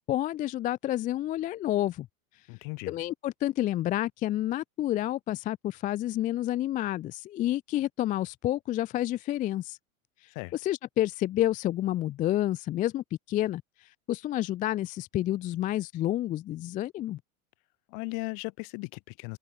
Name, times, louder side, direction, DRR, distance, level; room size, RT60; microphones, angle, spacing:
voice 1, 0.1-2.1 2.9-9.8 10.2-13.6 14.1-17.2, left 13 dB, 20° left, 0.3 m, -29 dB
voice 2, 2.5-2.9 10.3-10.5 17.9-19.4, left 32 dB, 55° left, 2.7 m, -37 dB
open air
hypercardioid pair, 110°, 42 cm